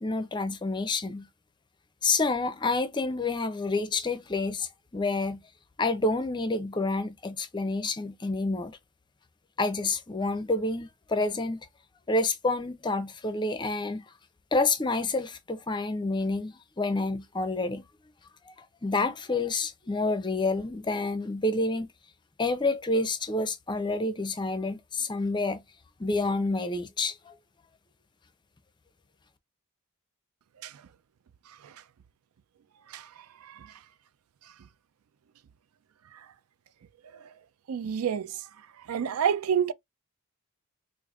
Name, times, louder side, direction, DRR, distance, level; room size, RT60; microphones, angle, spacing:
voice 1, 0.0-1.3 2.0-5.4 5.8-8.8 9.6-11.7 12.1-14.0 14.5-17.8 18.5-18.6 18.8-21.9 22.4-25.6 26.0-27.3, left 3 dB, 20° left, 0.5 m, -28 dB
voice 2, 32.9-33.7 37.7-38.4 38.9-39.7, right 8 dB, 80° right, 0.4 m, -29 dB
4.9 x 2.5 x 2.4 m
head